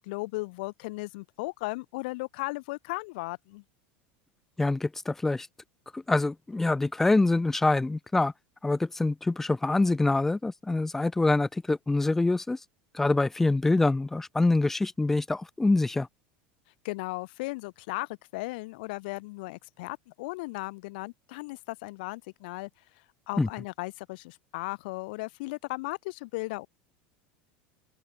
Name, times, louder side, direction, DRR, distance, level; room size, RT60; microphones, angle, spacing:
voice 1, 0.0-3.6 16.8-22.7 23.3-26.7, left 24 dB, 60° left, 2.6 m, -36 dB
voice 2, 4.6-5.5 5.9-8.3 8.6-12.6 12.9-16.1 23.4-23.5, left 2 dB, 5° left, 0.5 m, -25 dB
open air
supercardioid pair, 175°, 6 cm